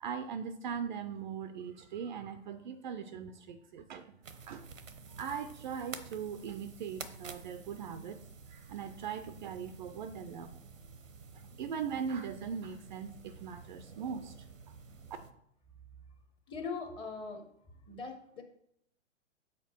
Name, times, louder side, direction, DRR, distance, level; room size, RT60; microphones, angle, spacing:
voice 1, 0.0-4.1 4.5-4.7 5.1-8.2 8.5-10.6 11.3-14.5, right 7 dB, 40° right, 10 dB, 0.5 m, -40 dB
sound 1, 4.2-15.3, right 5 dB, 85° right, 0.9 m, -50 dB
voice 2, 16.5-17.4 17.9-18.4, left 4 dB, 15° left, 4 dB, 0.8 m, -40 dB
7.5 x 4.4 x 4.4 m, 0.73 s
figure-of-eight pair, 120°, 38 cm